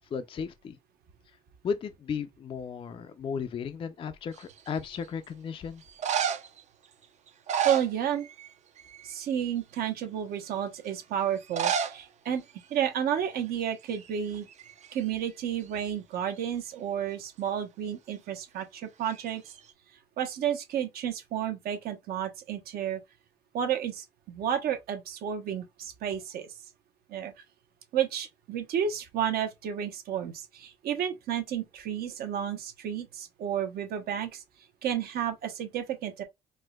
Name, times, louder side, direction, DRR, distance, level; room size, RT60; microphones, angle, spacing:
voice 1, 0.1-0.8 1.6-5.8, left 6 dB, 30° left, 0.4 m, -35 dB
sound 1, 4.4-4.9 5.8-6.6 7.3-8.5 8.8-9.1 9.7-9.8 11.4-12.0 12.3-12.4 12.6-12.7 13.4-13.6 13.9-15.1 19.1-19.7, right 8 dB, 45° right, 0.5 m, -31 dB
voice 2, 7.6-8.3 9.0-12.4 12.7-14.5 14.9-19.4 20.2-23.0 23.5-26.5 27.1-27.3 27.9-34.4 34.8-36.2, right 9 dB, 65° right, 0.8 m, -31 dB
4.4 x 2.1 x 2.2 m
cardioid pair, 110°, 17 cm